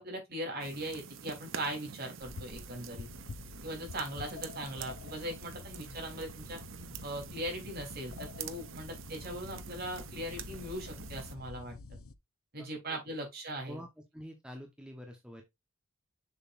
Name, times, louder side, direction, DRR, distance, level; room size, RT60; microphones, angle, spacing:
voice 1, 0.0-3.1 3.6-6.6 7.0-12.0 12.5-13.8, right 1 dB, 45° right, 3.4 m, -40 dB
sound 1, 0.6-11.3, right 7 dB, 70° right, 0.7 m, -47 dB
sound 2, 2.2-12.1, left 4 dB, 85° left, 0.7 m, -48 dB
voice 2, 12.6-13.0 13.6-13.9 14.1-15.4, equal, 5° right, 1.0 m, -47 dB
7.0 x 6.7 x 2.5 m
head